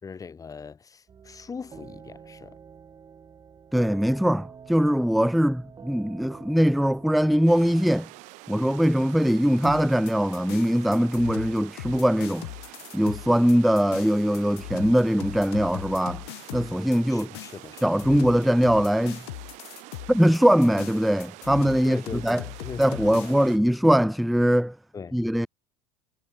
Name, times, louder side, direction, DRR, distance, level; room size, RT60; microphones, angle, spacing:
voice 1, 0.0-2.6 17.1-17.8 21.8-23.5 24.9-25.2, left 5 dB, 25° left, 6.0 m, -40 dB
sound 1, 1.1-7.9, right 6 dB, 30° right, 2.6 m, -47 dB
voice 2, 3.7-8.1 8.5-12.5 12.9-16.2 16.5-17.3 17.8-19.2 20.1-22.4 22.8-24.8 25.1-25.5, equal, ahead, 0.5 m, -21 dB
sound 2, 7.5-23.6, right 24 dB, 55° right, 6.0 m, -46 dB
sound 3, 9.6-23.3, left 20 dB, 65° left, 6.0 m, -40 dB
hypercardioid pair, 75°, 14 cm